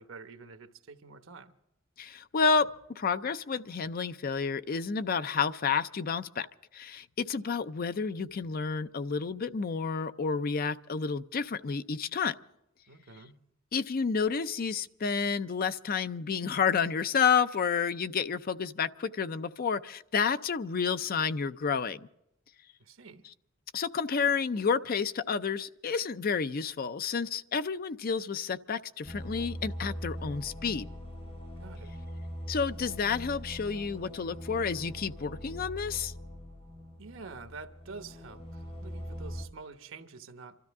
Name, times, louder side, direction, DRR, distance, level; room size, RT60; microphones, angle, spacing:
voice 1, 0.0-1.6 12.9-13.4 22.8-23.2 31.6-32.0 37.0-40.6, right 4 dB, 75° right, 1.0 m, -47 dB
voice 2, 2.0-2.7 3.0-6.5 6.7-12.4 13.7-22.0 23.7-30.9 32.5-36.1, left 5 dB, 45° left, 0.5 m, -30 dB
sound 1, 29.0-39.5, equal, 30° left, 1.6 m, -41 dB
26.5 x 13.0 x 3.6 m
head